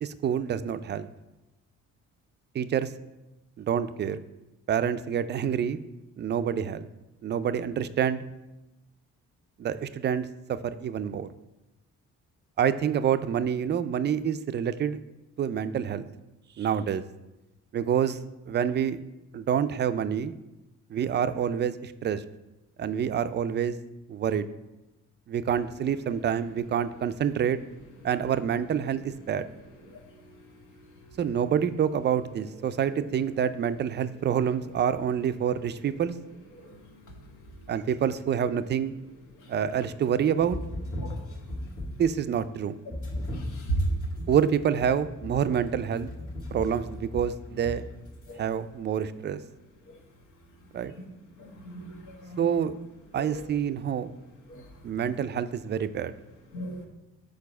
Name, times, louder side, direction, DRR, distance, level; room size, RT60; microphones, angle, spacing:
voice 1, 0.0-1.1 2.5-2.9 3.6-4.2 4.7-5.8 6.2-6.9 7.2-8.2 9.6-11.3 12.6-15.0 15.4-16.1 16.6-17.0 17.7-19.0 19.3-20.3 20.9-22.2 22.8-23.8 24.1-24.5 25.3-27.6 28.0-29.5 31.2-36.1 37.7-38.9 39.5-40.6 42.0-42.8 44.3-46.1 46.5-47.8 48.4-49.4 50.7-50.9 52.4-52.7 53.1-54.1 54.8-56.1, right 8 dB, 35° right, 12 dB, 0.4 m, -27 dB
sound 1, 40.4-42.2 42.9-48.3, left 1 dB, 45° left, 1.6 m, -37 dB
voice 2, 43.3-43.7 48.3-48.4 51.6-52.4 53.2-53.4 54.5-54.6 56.5-56.9, right 3 dB, 80° left, 2 dB, 1.4 m, -36 dB
4.7 x 4.6 x 5.9 m, 0.99 s
cardioid pair, 90°, 30 cm